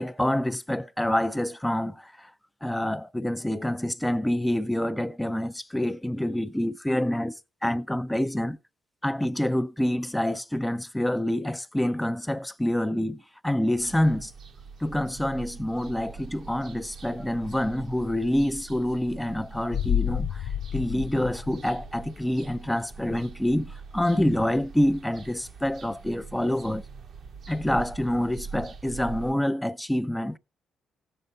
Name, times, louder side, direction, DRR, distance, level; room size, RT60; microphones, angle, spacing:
voice 1, 0.0-2.3 2.6-8.6 9.0-14.3 14.8-26.8 27.5-30.4, left 1 dB, 5° left, 0.5 m, -27 dB
sound 1, 13.8-29.3, right 5 dB, 60° right, 0.9 m, -43 dB
sound 2, 19.7-22.4 22.7-22.8, left 9 dB, 70° left, 0.4 m, -30 dB
15.0 x 6.7 x 4.0 m
cardioid pair, 90°, 0 cm